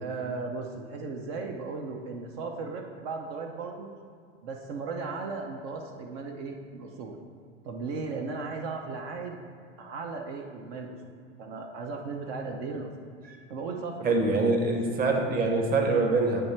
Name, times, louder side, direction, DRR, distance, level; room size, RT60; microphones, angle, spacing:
voice 1, 0.0-3.9 4.4-7.2 7.6-9.4 9.8-11.0 11.4-12.9 13.5-14.4, right 4 dB, 60° right, 3 dB, 0.8 m, -36 dB
voice 2, 14.0-16.4, right 3 dB, 25° right, 3 dB, 0.9 m, -24 dB
9.5 x 3.3 x 4.4 m, 2.3 s
supercardioid pair, 115°, 35 cm